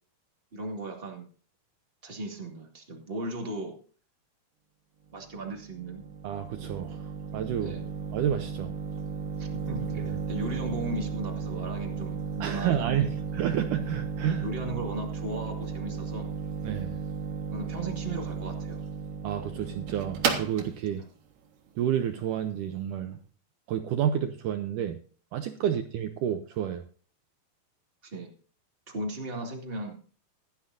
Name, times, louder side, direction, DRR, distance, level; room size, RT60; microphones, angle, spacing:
voice 1, 0.5-1.3 2.0-3.7 5.1-6.0 7.6-7.8 9.4-13.1 14.4-16.3 17.5-18.8 21.0-21.1 25.6-25.7 28.0-28.3 28.9-30.0, right 2 dB, 25° right, 1 dB, 1.3 m, -37 dB
sound 1, 5.1-22.8, right 5 dB, 65° right, 3.1 m, -35 dB
voice 2, 6.2-7.0 7.3-7.7 8.1-8.7 10.0-10.2 12.4-14.5 16.6-16.9 19.2-21.0 21.8-23.2 23.7-25.0 25.3-26.8, right 10 dB, 80° right, 8 dB, 1.8 m, -30 dB
16.0 x 12.0 x 2.6 m, 0.41 s
omnidirectional pair, 4.5 m